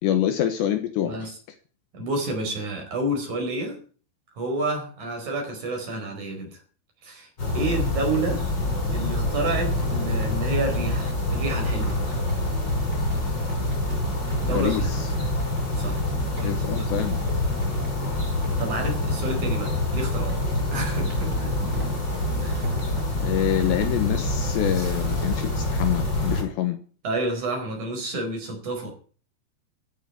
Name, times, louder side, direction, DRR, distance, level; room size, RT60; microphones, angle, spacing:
voice 1, 0.0-1.3 14.5-15.1 16.4-17.2 23.2-26.8, left 11 dB, 70° left, 9 dB, 3.0 m, -26 dB
voice 2, 1.0-1.3 1.9-3.8 4.4-6.6 7.0-7.3 7.5-8.4 8.9-12.0 14.4-14.9 15.8-16.0 16.4-16.9 18.6-21.5 22.4-22.8 27.0-28.9, right 2 dB, 40° right, 2 dB, 5.8 m, -29 dB
sound 1, 7.4-26.4, left 1 dB, 20° left, 4.8 m, -26 dB
Run, 9.4-24.4, right 2 dB, 20° right, 5.5 m, -48 dB
14.5 x 9.1 x 8.5 m, 0.41 s
omnidirectional pair, 5.8 m